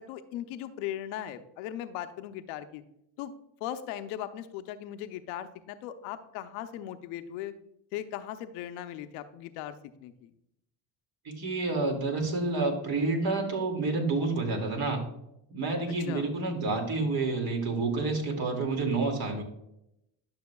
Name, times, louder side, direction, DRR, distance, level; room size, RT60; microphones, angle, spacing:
voice 1, 0.0-2.8 3.2-3.3 3.6-7.5 7.9-10.3 15.9-16.3, left 11 dB, 80° left, 9 dB, 0.8 m, -38 dB
voice 2, 11.2-15.1 15.5-19.4, right 3 dB, 50° right, 3 dB, 2.3 m, -29 dB
11.5 x 6.4 x 2.3 m, 0.82 s
supercardioid pair, 80°, 46 cm